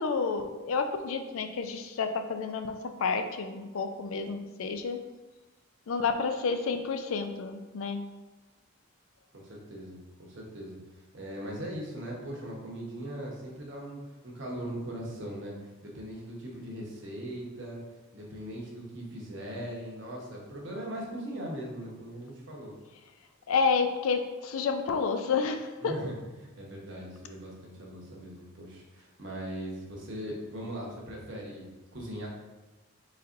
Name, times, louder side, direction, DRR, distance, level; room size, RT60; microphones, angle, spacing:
voice 1, 0.0-5.0 5.9-8.0 23.5-25.9, left 5 dB, 80° left, 7 dB, 0.4 m, -30 dB
voice 2, 9.3-15.5 15.8-17.8 18.1-22.7 25.8-31.7 31.9-32.3, right 1 dB, 60° right, -2 dB, 1.0 m, -40 dB
4.1 x 3.9 x 2.5 m, 1.1 s
head